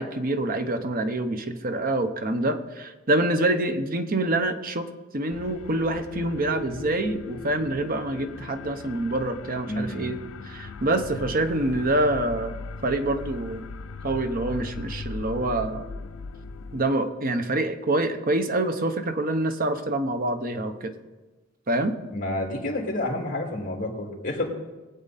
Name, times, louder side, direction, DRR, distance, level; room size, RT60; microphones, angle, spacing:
voice 1, 0.0-4.9 5.1-10.2 10.4-12.5 12.8-13.6 14.0-15.9 16.7-20.9 21.7-21.9, right 2 dB, 45° right, 8 dB, 0.9 m, -26 dB
sound 1, 5.3-16.8, left 4 dB, 85° left, 0.5 m, -38 dB
voice 2, 9.7-10.1 22.1-24.5, left 1 dB, 45° left, 0 dB, 2.4 m, -29 dB
19.5 x 8.0 x 4.1 m, 1.2 s
head